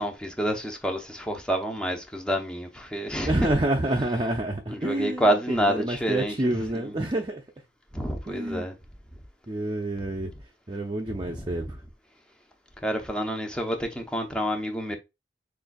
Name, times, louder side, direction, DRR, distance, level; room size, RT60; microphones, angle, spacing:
voice 1, 0.0-3.3 4.7-6.4 6.7-6.9 7.9-8.7 11.2-11.5 12.8-15.0, equal, 5° left, 0.8 m, -28 dB
voice 2, 3.3-7.4 8.3-8.7 9.5-10.3 10.7-11.8, right 1 dB, 25° right, 0.6 m, -28 dB
6.7 x 2.6 x 2.3 m
head